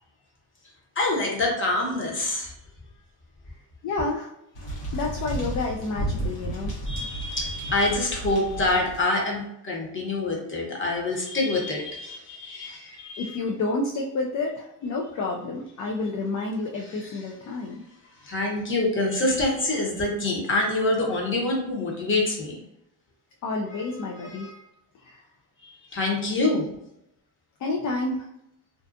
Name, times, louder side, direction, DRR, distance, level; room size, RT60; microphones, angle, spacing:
voice 1, 1.0-2.5 4.0-4.1 6.9-13.4 16.8-17.3 18.2-22.6 23.7-23.8 24.2-24.6 25.6-26.6, left 2 dB, 30° left, -1 dB, 0.9 m, -26 dB
voice 2, 3.8-4.3 4.9-6.7 13.2-17.8 23.4-24.5 25.0-25.2 27.6-28.3, left 3 dB, 45° left, 0 dB, 0.4 m, -29 dB
sound 1, 4.6-9.0, right 1 dB, 75° left, 1.1 m, -32 dB
2.6 x 2.3 x 2.5 m, 0.80 s
cardioid pair, 95°, 43 cm